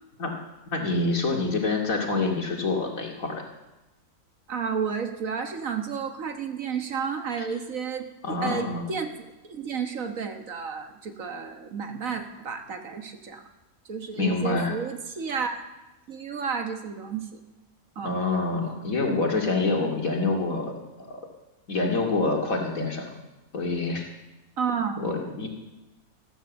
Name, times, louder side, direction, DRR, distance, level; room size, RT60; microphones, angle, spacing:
voice 1, 0.7-3.4 7.4-7.5 8.2-8.8 14.2-14.8 18.0-21.2 21.7-23.0 23.5-24.1 25.0-25.5, left 3 dB, 65° left, 1 dB, 2.7 m, -26 dB
voice 2, 4.5-13.4 13.9-15.6 16.1-17.4 17.9-18.1 24.6-25.0, right 6 dB, 65° right, 6 dB, 1.7 m, -32 dB
14.0 x 13.5 x 7.3 m, 1.0 s
omnidirectional pair, 1.6 m